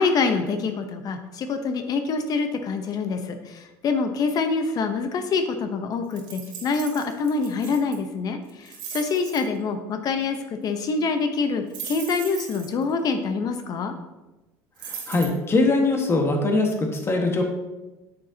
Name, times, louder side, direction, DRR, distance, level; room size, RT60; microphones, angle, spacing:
voice 1, 0.0-10.4 10.6-13.9, left 4 dB, 45° left, 7 dB, 0.8 m, -26 dB
sound 1, 6.1-8.0 8.5-9.4 11.7-12.8 14.8-15.2, right 7 dB, 60° right, 1.7 m, -38 dB
voice 2, 14.8-17.4, left 2 dB, 30° left, 3 dB, 1.5 m, -22 dB
8.3 x 6.7 x 2.8 m, 1.1 s
supercardioid pair, 90°, 9 cm